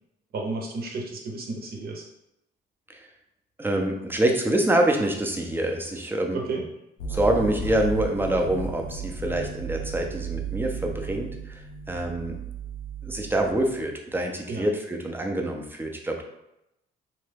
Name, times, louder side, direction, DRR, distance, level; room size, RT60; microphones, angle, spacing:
voice 1, 0.3-2.1 6.3-6.6 14.5-14.7, right 3 dB, 55° right, 1 dB, 0.8 m, -32 dB
voice 2, 3.6-6.4 7.1-12.4 13.0-16.2, right 1 dB, 10° right, 2 dB, 0.6 m, -26 dB
sound 1, 7.0-13.8, right 4 dB, 90° left, 0.5 m, -34 dB
2.9 x 2.2 x 3.3 m, 0.85 s
supercardioid pair, 75°, 19 cm